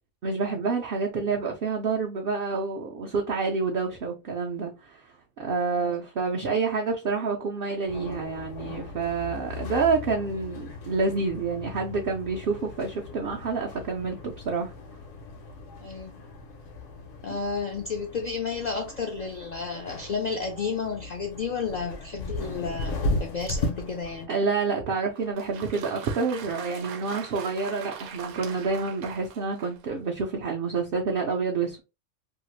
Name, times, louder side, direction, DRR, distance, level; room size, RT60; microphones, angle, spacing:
voice 1, 0.2-14.7 24.3-31.8, right 4 dB, 60° right, 0.6 m, -28 dB
sound 1, 7.9-24.3, left 2 dB, 80° left, 1.1 m, -37 dB
voice 2, 15.8-16.2 17.2-24.3, left 5 dB, 65° left, 0.4 m, -32 dB
Applause, 25.1-30.0, right 7 dB, 85° right, 1.0 m, -42 dB
2.7 x 2.4 x 3.0 m
omnidirectional pair, 1.3 m